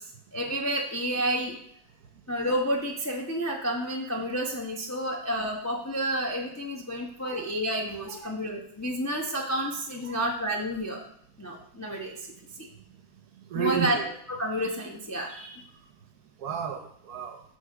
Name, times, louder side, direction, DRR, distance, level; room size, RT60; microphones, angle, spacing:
voice 1, 0.3-1.6 2.3-11.0 11.4-12.1 12.6-12.7 13.5-14.0 14.3-15.6, equal, 20° left, 0 dB, 0.4 m, -30 dB
voice 2, 13.5-14.1 16.4-17.4, right 8 dB, 65° right, 5 dB, 1.1 m, -32 dB
9.0 x 3.4 x 6.6 m, 0.70 s
omnidirectional pair, 2.1 m